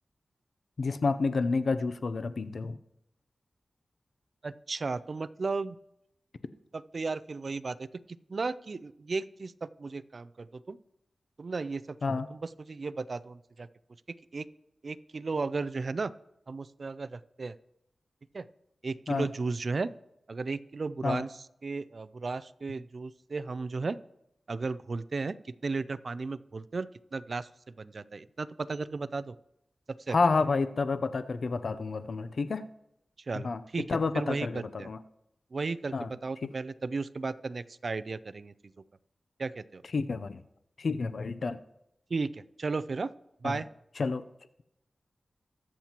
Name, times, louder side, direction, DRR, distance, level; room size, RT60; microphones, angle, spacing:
voice 1, 0.8-2.8 12.0-12.3 19.1-19.3 21.0-21.2 30.1-32.6 33.3-33.6 33.9-35.0 35.9-36.1 36.4-36.5 39.9-40.4 40.8-41.6 43.4-43.6 44.0-44.2, left 4 dB, 70° left, 12 dB, 0.6 m, -29 dB
voice 2, 4.4-5.8 6.7-7.9 8.3-10.8 11.4-12.0 12.3-13.7 14.3-14.5 14.8-16.1 16.5-17.5 18.3-18.5 18.8-19.9 20.3-24.0 24.5-25.3 25.6-27.5 27.8-29.3 30.1-30.2 33.3-33.9 34.1-34.9 35.5-38.5 39.4-39.8 42.1-43.1 43.4-43.7, right 4 dB, 55° right, 16 dB, 0.4 m, -34 dB
21.5 x 7.4 x 2.9 m, 0.83 s
wide cardioid pair, 80°, 0 cm